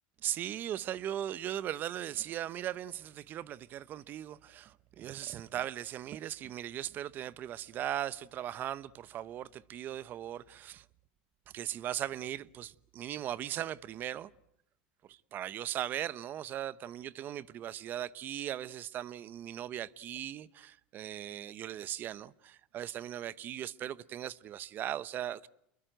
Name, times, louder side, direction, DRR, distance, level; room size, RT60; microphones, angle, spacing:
voice 1, 0.2-10.8 11.5-14.3 15.1-25.5, right 11 dB, 40° right, 0.9 m, -38 dB
28.5 x 22.0 x 8.1 m
supercardioid pair, 115°, 5 cm